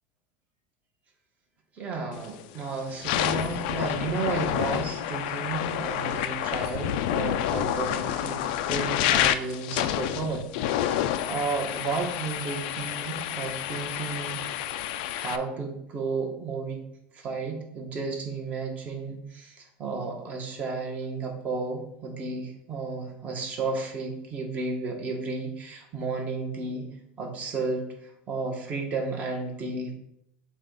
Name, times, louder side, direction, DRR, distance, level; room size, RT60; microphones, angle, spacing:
voice 1, 1.8-8.4 8.7-14.4 15.2-16.8 17.1-26.8 27.2-27.9 28.3-29.9, right 4 dB, 30° right, 1 dB, 1.3 m, -33 dB
sound 1, 2.2-2.4 2.9-15.4, left 11 dB, 70° left, 0.4 m, -29 dB
7.1 x 2.5 x 5.3 m, 0.78 s
supercardioid pair, 145°, 5 cm